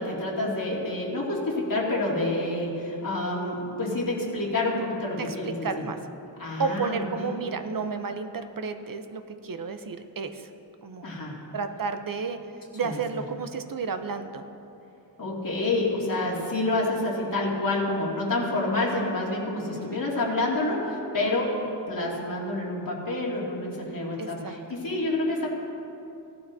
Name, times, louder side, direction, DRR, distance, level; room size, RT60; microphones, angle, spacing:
voice 1, 0.0-5.8 6.4-7.3 11.0-11.4 12.8-13.0 15.2-21.6 21.9-25.5, left 2 dB, 50° left, -5 dB, 2.4 m, -28 dB
voice 2, 5.1-6.0 6.6-10.5 10.8-11.2 11.5-12.4 12.7-14.4 19.7-20.0 24.2-24.5, right 5 dB, 50° right, 8 dB, 0.7 m, -32 dB
17.0 x 12.5 x 2.7 m, 2.8 s
wide cardioid pair, 120°, 43 cm